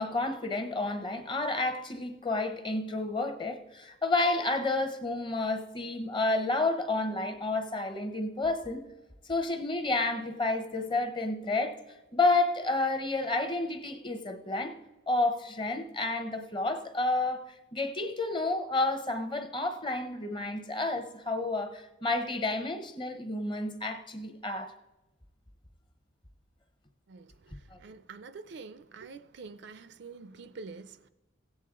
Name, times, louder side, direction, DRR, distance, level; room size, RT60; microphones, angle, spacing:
voice 1, 0.0-8.9 9.2-11.8 12.1-14.7 15.1-17.4 17.7-24.7 27.7-27.8, left 2 dB, 25° left, 0.8 m, -30 dB
voice 2, 27.1-31.1, right 4 dB, 55° right, 0.4 m, -47 dB
16.0 x 8.5 x 3.7 m
head